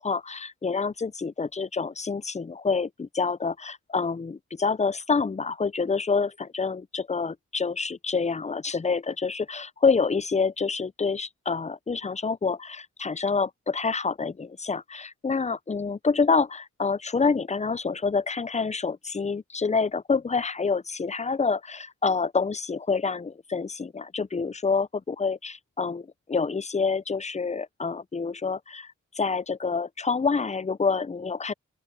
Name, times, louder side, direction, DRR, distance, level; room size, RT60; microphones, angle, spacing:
voice 1, 0.0-31.5, left 4 dB, 20° left, 0.5 m, -27 dB
open air
cardioid pair, 40°, 31 cm